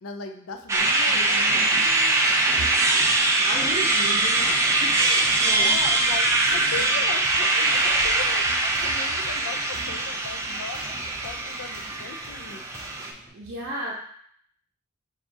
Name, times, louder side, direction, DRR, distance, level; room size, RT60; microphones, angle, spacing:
voice 1, 0.0-2.3 5.4-8.5 8.8-10.8 11.2-12.6, left 5 dB, 80° left, 5 dB, 0.5 m, -38 dB
sound 1, 0.7-13.1, right 2 dB, 15° right, 0.3 m, -22 dB
Train, 0.8-13.3, right 1 dB, 30° left, 1.3 m, -44 dB
voice 2, 1.1-1.6 3.4-5.7 13.3-14.0, right 1 dB, 55° right, -5 dB, 0.6 m, -34 dB
sound 2, 5.2-13.2, equal, 15° left, 0.7 m, -47 dB
5.9 x 2.4 x 2.6 m, 0.62 s
head